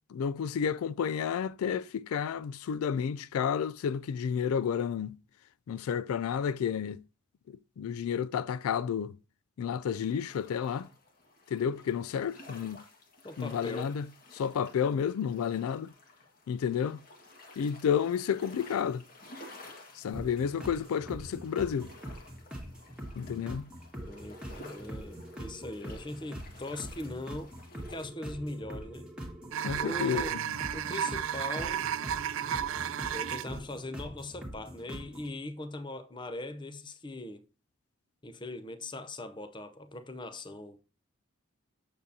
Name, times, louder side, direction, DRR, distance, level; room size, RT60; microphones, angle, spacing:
voice 1, 0.1-5.1 5.7-7.0 7.5-9.1 9.6-10.9 11.5-12.8 13.4-14.1 14.3-15.9 16.5-17.0 17.6-19.0 20.0-21.9 23.2-23.7 29.6-30.2, left 7 dB, 85° left, 0.3 m, -31 dB
sound 1, 9.9-28.0, left 2 dB, 40° left, 1.7 m, -53 dB
voice 2, 13.2-13.9 24.0-29.1 29.7-30.4 30.7-31.8 33.1-37.4 38.2-40.8, left 1 dB, 20° left, 0.6 m, -40 dB
sound 2, 20.1-35.3, equal, 5° right, 1.7 m, -43 dB
sound 3, 29.5-33.6, right 9 dB, 65° right, 0.3 m, -33 dB
8.7 x 6.7 x 2.7 m
head